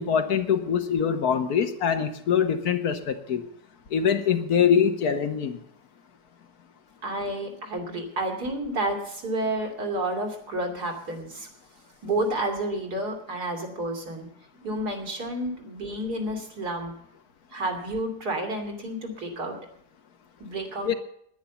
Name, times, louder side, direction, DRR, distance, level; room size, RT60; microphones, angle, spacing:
voice 1, 0.0-3.4 3.9-5.6 20.8-20.9, left 7 dB, 70° left, 8 dB, 1.5 m, -23 dB
voice 2, 7.0-11.5 12.0-14.3 14.5-16.9 17.5-19.6 20.4-21.0, right 1 dB, 65° right, 2 dB, 3.2 m, -30 dB
10.5 x 10.5 x 8.3 m, 0.69 s
omnidirectional pair, 1.8 m